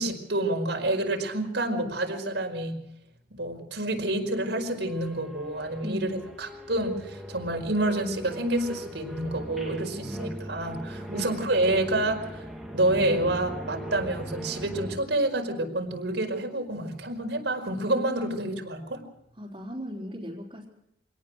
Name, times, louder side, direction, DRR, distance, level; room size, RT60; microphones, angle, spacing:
voice 1, 0.0-2.8 3.4-12.4 12.7-19.0, right 1 dB, 75° right, 3 dB, 5.0 m, -28 dB
sound 1, 4.8-15.0, equal, ahead, 2.6 m, -40 dB
voice 2, 9.9-10.3 11.1-11.3 19.4-20.7, equal, 30° right, -6 dB, 3.8 m, -37 dB
26.0 x 18.5 x 6.4 m, 0.81 s
head